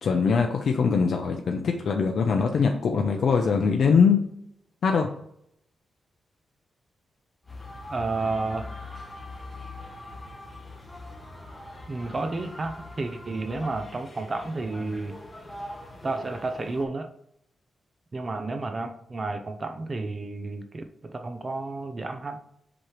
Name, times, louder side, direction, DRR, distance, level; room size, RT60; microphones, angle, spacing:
voice 1, 0.0-4.2 4.8-5.1, left 5 dB, 55° left, 3 dB, 0.7 m, -22 dB
sound 1, 7.4-16.8, left 2 dB, 15° left, 1.1 m, -42 dB
voice 2, 7.9-8.7 11.9-15.2 16.0-17.1 18.1-22.4, right 3 dB, 25° right, 6 dB, 0.6 m, -31 dB
7.7 x 3.0 x 4.9 m, 0.71 s
wide cardioid pair, 165°, 0 cm